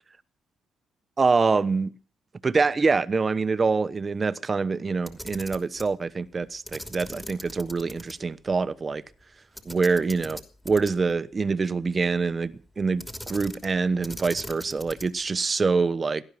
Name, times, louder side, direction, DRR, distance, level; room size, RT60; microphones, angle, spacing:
voice 1, 1.2-1.9 2.4-9.0 9.7-10.4 10.6-16.2, right 4 dB, 30° right, 1.0 m, -25 dB
Camera, 5.0-5.9 6.7-8.1 8.5-8.6 9.6-11.2 13.0-13.8 14.0-15.2, equal, 5° left, 2.9 m, -40 dB
18.0 x 12.0 x 5.7 m
cardioid pair, 90°, 0 cm